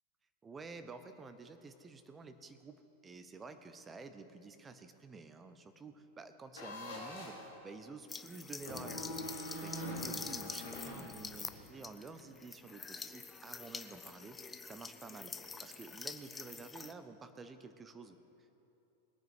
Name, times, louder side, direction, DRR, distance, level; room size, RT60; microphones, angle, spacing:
voice 1, 0.4-2.8 3.0-7.4 7.6-9.1 9.5-14.4 14.6-15.3 15.6-18.2, right 4 dB, 15° right, 9 dB, 0.9 m, -50 dB
sound 1, 6.5-7.5 8.6-11.7, left 1 dB, 65° left, 3.7 m, -44 dB
sound 2, 8.1-16.9, left 4 dB, 15° left, 0.6 m, -46 dB
21.0 x 9.2 x 4.8 m, 3.0 s
figure-of-eight pair, 90°, 0 cm